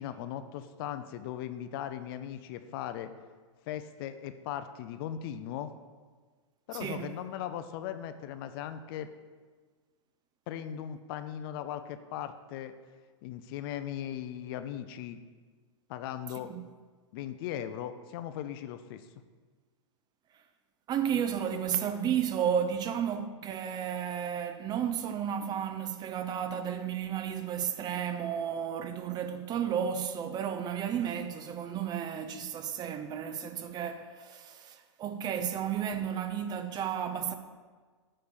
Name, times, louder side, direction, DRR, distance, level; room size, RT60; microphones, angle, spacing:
voice 1, 0.0-3.1 3.7-5.7 6.7-9.1 10.5-12.7 13.2-15.2 15.9-16.5 17.1-19.0, left 10 dB, 45° left, 0.5 m, -38 dB
voice 2, 6.7-7.1 16.5-16.6 20.9-37.4, right 8 dB, 25° right, 0.6 m, -33 dB
9.4 x 3.3 x 6.8 m
hypercardioid pair, 115°, 16 cm